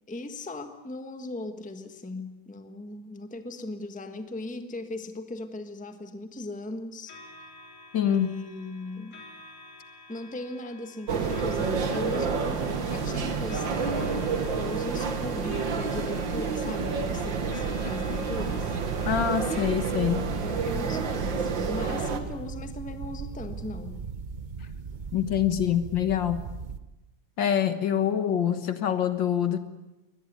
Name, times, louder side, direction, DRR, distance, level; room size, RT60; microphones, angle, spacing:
voice 1, 0.1-7.2 8.1-9.2 10.1-18.8 20.4-24.0, left 2 dB, 5° left, 8 dB, 1.2 m, -38 dB
sound 1, 7.1-19.7, left 2 dB, 85° left, 4.8 m, -50 dB
voice 2, 7.9-8.3 19.1-20.3 25.1-26.4 27.4-29.6, left 9 dB, 60° left, 11 dB, 2.0 m, -25 dB
sound 2, 11.1-22.2, right 5 dB, 60° right, 2.4 m, -29 dB
sound 3, 16.8-26.8, right 5 dB, 40° right, 0.6 m, -38 dB
23.0 x 19.0 x 9.4 m, 1.0 s
omnidirectional pair, 2.3 m